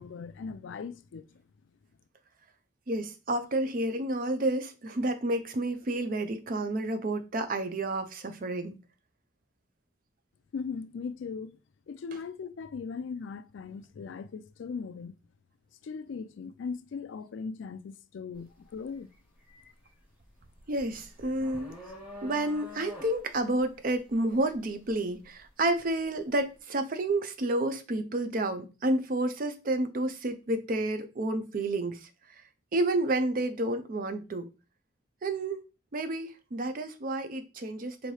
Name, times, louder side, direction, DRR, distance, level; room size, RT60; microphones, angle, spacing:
voice 1, 0.0-1.4 10.5-11.6 11.9-15.1 15.8-19.1, left 5 dB, 80° left, 0.4 m, -39 dB
voice 2, 2.9-8.8 20.7-21.7 22.2-32.1 32.7-34.5 35.2-35.6 35.9-38.1, right 1 dB, 45° right, 0.5 m, -30 dB
sound 1, 18.3-18.6 19.0-26.0, left 1 dB, 10° right, 1.2 m, -48 dB
4.2 x 2.7 x 3.2 m
head